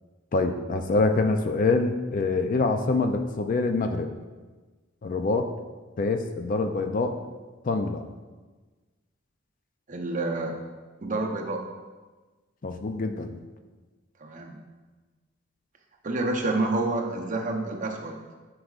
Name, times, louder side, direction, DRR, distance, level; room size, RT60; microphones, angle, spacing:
voice 1, 0.3-4.1 5.0-5.5 6.0-7.2 7.6-8.1 12.6-13.4, left 3 dB, 45° left, 6 dB, 0.4 m, -25 dB
voice 2, 9.9-10.5 11.0-11.6 14.2-14.6 16.0-18.2, right 2 dB, 40° right, 2 dB, 0.7 m, -28 dB
9.7 x 4.8 x 2.4 m, 1.3 s
head